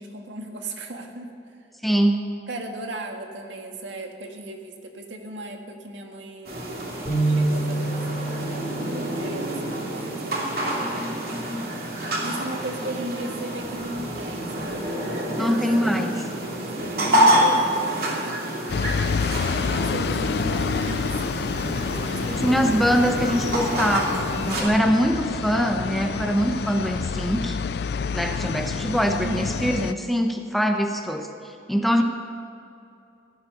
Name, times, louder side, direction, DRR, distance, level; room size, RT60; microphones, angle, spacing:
voice 1, 0.0-1.3 2.5-6.8 7.2-11.1 12.2-15.6 16.1-16.5 16.8-18.8 19.5-22.6 29.2-29.7, right 2 dB, 85° right, 3 dB, 1.9 m, -37 dB
voice 2, 1.8-2.2 10.8-11.6 15.4-16.1 22.2-27.6 28.1-32.0, equal, ahead, 4 dB, 0.8 m, -23 dB
sound 1, 6.4-24.6, right 1 dB, 55° right, 2.7 m, -27 dB
sound 2, 7.1-10.6, right 2 dB, 25° left, 2.6 m, -28 dB
sound 3, 18.7-29.9, left 5 dB, 60° left, 0.4 m, -28 dB
16.5 x 12.0 x 6.7 m, 2.6 s
head